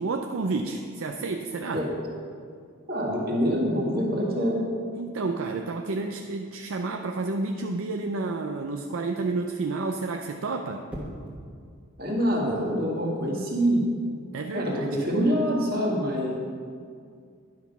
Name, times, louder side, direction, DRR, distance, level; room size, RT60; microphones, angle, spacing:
voice 1, 0.0-1.8 5.0-10.8 14.3-14.9, right 3 dB, 65° right, 4 dB, 0.5 m, -30 dB
voice 2, 2.9-4.6 12.0-13.9 14.5-16.3, equal, 45° right, -2 dB, 1.8 m, -25 dB
sound 1, 10.9-11.4 13.4-13.7, equal, 5° right, 1.4 m, -39 dB
10.5 x 5.8 x 6.0 m, 2.2 s
head